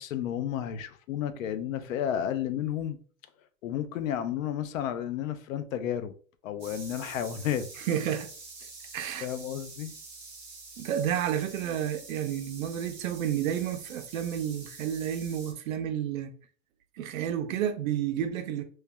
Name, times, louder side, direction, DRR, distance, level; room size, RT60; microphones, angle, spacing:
voice 1, 0.0-3.0 3.6-6.1 6.4-7.7 9.2-9.9, left 10 dB, 70° left, 0.5 m, -32 dB
sound 1, 6.6-15.5, right 3 dB, 20° right, 0.4 m, -46 dB
voice 2, 7.9-8.3 8.9-9.3 10.8-16.3 17.0-18.6, right 10 dB, 75° right, 0.5 m, -30 dB
3.1 x 2.2 x 2.2 m
supercardioid pair, 165°, 42 cm